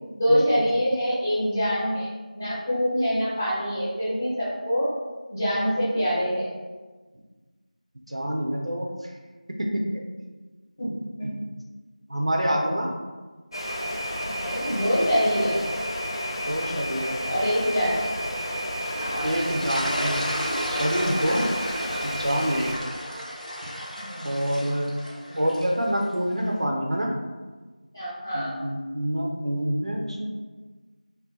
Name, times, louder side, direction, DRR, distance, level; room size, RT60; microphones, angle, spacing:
voice 1, 0.1-2.1 2.3-4.9 5.3-6.5 10.8-10.9 11.2-11.3 14.4-15.6 17.3-18.1 24.1-24.2 25.3-25.4 27.9-28.6, equal, 20° left, -9 dB, 0.8 m, -25 dB
voice 2, 8.1-8.9 9.6-10.0 11.2-11.3 12.1-13.0 16.5-17.2 19.2-21.5 22.0-22.7 24.2-24.9 25.4-27.1 28.3-30.3, equal, 50° right, 0 dB, 0.4 m, -27 dB
sound 1, 13.5-22.7, equal, 35° left, 0.4 m, -31 dB
sound 2, 18.8-26.1, equal, 80° left, 0.7 m, -33 dB
2.4 x 2.1 x 3.9 m, 1.3 s
figure-of-eight pair, 175°, 4 cm